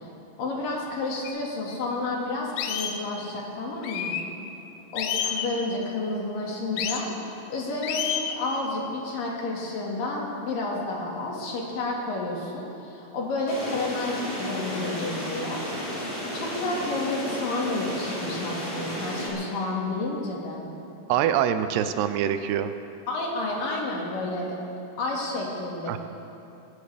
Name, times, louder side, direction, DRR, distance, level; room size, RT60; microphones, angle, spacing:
voice 1, 0.4-4.2 4.9-7.1 7.5-15.6 16.3-20.6 23.1-24.6 25.0-26.0, left 2 dB, 60° left, -2 dB, 3.4 m, -30 dB
sound 1, 1.2-1.3 1.9-2.0 2.6-3.0 3.8-4.3 5.0-5.5 6.8-7.0 7.8-8.4, left 8 dB, 80° left, 2.8 m, -29 dB
sound 2, 13.5-19.3, equal, 10° left, 3.8 m, -33 dB
voice 2, 21.1-22.7 25.9-26.0, right 9 dB, 85° right, 10 dB, 2.7 m, -24 dB
21.0 x 16.5 x 3.4 m, 2.8 s
omnidirectional pair, 4.7 m